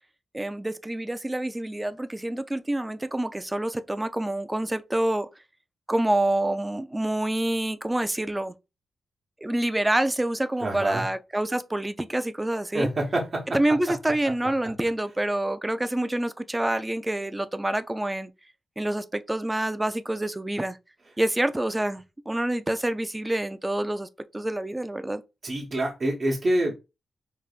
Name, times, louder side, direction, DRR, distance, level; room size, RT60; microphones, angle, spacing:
voice 1, 0.3-5.3 5.9-8.5 9.4-12.9 13.5-18.3 18.8-20.8 21.2-24.1 24.3-25.2, right 1 dB, 10° right, 0.4 m, -27 dB
voice 2, 10.6-11.0 12.7-13.6 13.9-14.0 25.4-26.7, right 1 dB, 40° right, 0.9 m, -26 dB
4.9 x 3.4 x 2.4 m
wide cardioid pair, 125°, 0 cm